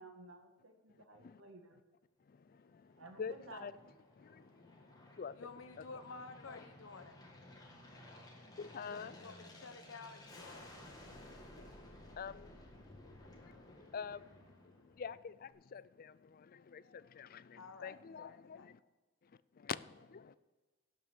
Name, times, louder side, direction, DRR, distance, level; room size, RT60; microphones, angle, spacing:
voice 1, 0.0-1.8 2.9-3.7, right 2 dB, 75° right, 1.7 m, -54 dB
voice 2, 2.3-3.7 4.2-5.5 6.5-6.6 8.4-9.2 11.1-11.3 11.6-18.8 19.5-20.4, left 6 dB, 45° left, 0.4 m, -48 dB
Aircraft, 2.5-15.2, left 1 dB, 20° left, 1.8 m, -56 dB
voice 3, 5.3-7.2 8.8-10.8 17.5-18.7, left 4 dB, 85° left, 1.0 m, -52 dB
12.5 x 5.7 x 7.2 m
head